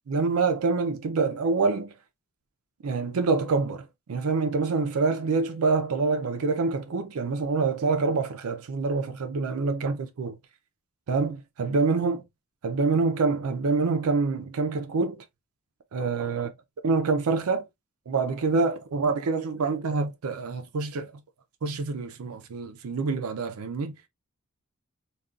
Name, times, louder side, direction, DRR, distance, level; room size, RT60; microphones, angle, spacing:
voice 1, 0.1-1.9 2.8-10.4 11.1-12.2 12.6-15.2 15.9-16.5 16.8-17.6 18.1-21.1 21.6-23.9, right 4 dB, 85° right, 0.5 m, -26 dB
3.6 x 2.3 x 2.3 m
head